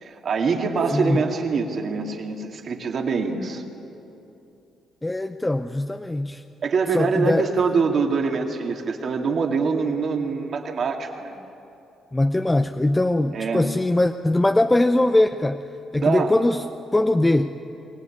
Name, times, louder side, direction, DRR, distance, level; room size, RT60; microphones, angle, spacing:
voice 1, 0.0-3.6 6.6-11.3 13.3-13.7 16.0-16.3, right 5 dB, 55° right, 2 dB, 2.5 m, -24 dB
voice 2, 0.9-1.2 5.0-6.4 6.9-7.5 12.1-15.6 15.9-16.7 16.9-17.6, left 1 dB, 15° left, 8 dB, 0.6 m, -21 dB
23.5 x 17.5 x 8.6 m, 2.8 s
cardioid pair, 90°, 0 cm